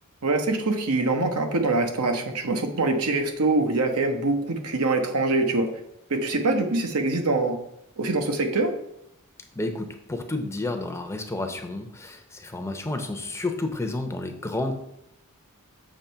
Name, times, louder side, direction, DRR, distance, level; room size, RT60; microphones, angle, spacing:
voice 1, 0.2-5.7 6.1-7.6 8.0-8.7, right 2 dB, 80° right, 5 dB, 0.9 m, -24 dB
voice 2, 9.6-14.7, left 2 dB, 15° left, 5 dB, 0.7 m, -31 dB
7.3 x 3.1 x 5.6 m, 0.78 s
head